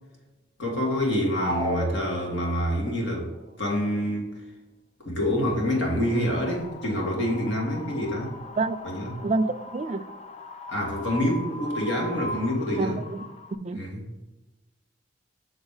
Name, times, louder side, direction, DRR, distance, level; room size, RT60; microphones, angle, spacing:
voice 1, 0.6-3.3 3.6-4.3 5.1-8.4 8.8-9.2 10.7-13.0 13.7-14.1, equal, 80° left, 0 dB, 1.8 m, -27 dB
sound 1, 1.3-2.8, equal, 50° left, 1.4 m, -31 dB
Wind, 5.4-13.6, left 2 dB, 35° left, 0.4 m, -40 dB
voice 2, 9.2-10.1 12.8-13.3 13.6-13.8, right 3 dB, 35° right, 10 dB, 0.3 m, -27 dB
6.3 x 4.0 x 4.8 m, 1.2 s
head